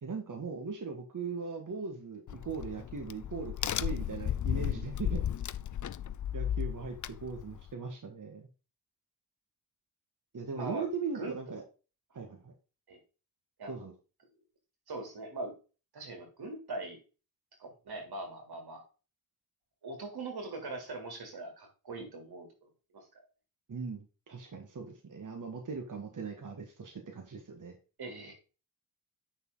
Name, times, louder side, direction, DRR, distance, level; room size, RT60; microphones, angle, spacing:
voice 1, 0.0-5.2 6.3-8.5 10.3-11.6 12.1-12.5 13.7-13.9 23.7-27.8, right 5 dB, 55° right, 3 dB, 1.9 m, -39 dB
Crack, 2.3-7.7, left 10 dB, 55° left, 0.5 m, -34 dB
voice 2, 10.5-10.9 11.1-11.4 12.9-13.0 13.6-13.9 14.9-15.5 15.9-17.0 17.6-18.8 19.8-22.5 22.9-23.0 28.0-28.3, right 2 dB, 85° right, 3 dB, 3.5 m, -41 dB
8.8 x 6.3 x 4.1 m, 0.33 s
cardioid pair, 75°, 37 cm